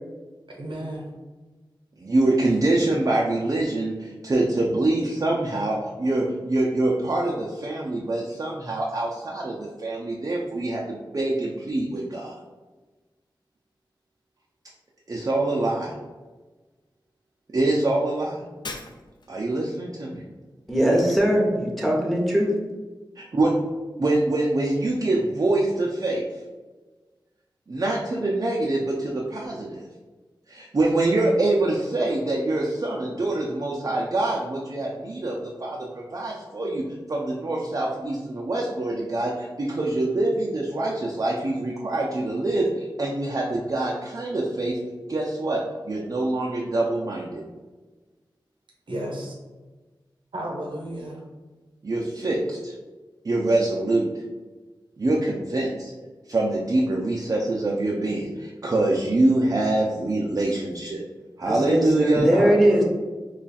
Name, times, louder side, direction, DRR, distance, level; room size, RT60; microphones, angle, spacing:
voice 1, 0.5-1.1 48.9-49.3 50.3-51.2 62.3-62.8, right 1 dB, 80° right, -1 dB, 0.8 m, -32 dB
voice 2, 2.0-12.4 15.1-15.9 17.5-18.4 19.3-20.2 23.1-23.5 24.0-26.2 27.7-29.8 30.5-35.8 36.1-36.8 37.1-44.8 45.1-47.4 51.8-52.7 53.2-54.0 55.0-55.9 56.3-61.0 61.4-62.3, right 2 dB, 45° right, -2 dB, 0.5 m, -25 dB
Shatter, 18.6-19.4, left 3 dB, 60° left, 0.4 m, -38 dB
voice 3, 20.7-22.6 61.5-62.8, equal, ahead, -2 dB, 0.9 m, -20 dB
3.0 x 2.3 x 4.1 m, 1.3 s
wide cardioid pair, 55°, 8 cm